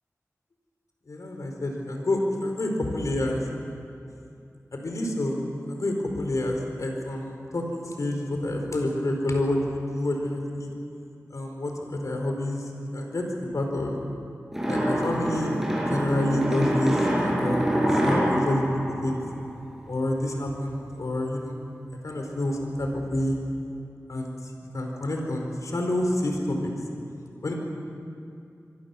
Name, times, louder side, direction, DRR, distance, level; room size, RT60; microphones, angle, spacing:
voice 1, 1.1-3.4 4.7-5.4 5.7-10.7 11.3-13.2 13.5-14.0 14.7-15.5 15.9-19.1 19.9-21.6 22.0-23.4 24.1-24.4 24.7-26.7 27.4-27.5, left 1 dB, 75° left, 2 dB, 4.6 m, -28 dB
sound 1, 14.5-19.9, equal, 5° right, 6.8 m, -26 dB
25.0 x 25.0 x 7.1 m, 2.6 s
wide cardioid pair, 75°, 6 cm